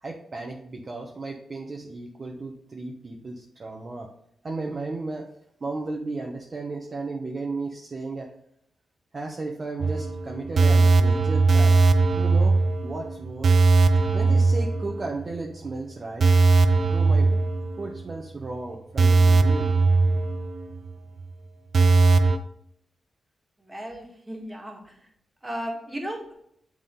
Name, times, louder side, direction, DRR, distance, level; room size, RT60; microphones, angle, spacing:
voice 1, 0.0-4.1 4.4-5.3 5.6-8.3 9.1-11.8 12.1-12.6 12.8-13.6 14.1-16.4 16.9-17.3 17.8-19.8, right 3 dB, 40° right, 0 dB, 0.9 m, -34 dB
sound 1, 9.8-15.4 15.7-15.8 16.2-18.1 18.4-18.5 19.0-20.9 21.2-21.3 21.7-22.4, right 3 dB, 60° right, 0.5 m, -19 dB
voice 2, 23.6-24.8 25.4-26.3, equal, 20° right, 1 dB, 1.8 m, -35 dB
8.6 x 3.7 x 3.8 m, 0.70 s
cardioid pair, 80°, 0 cm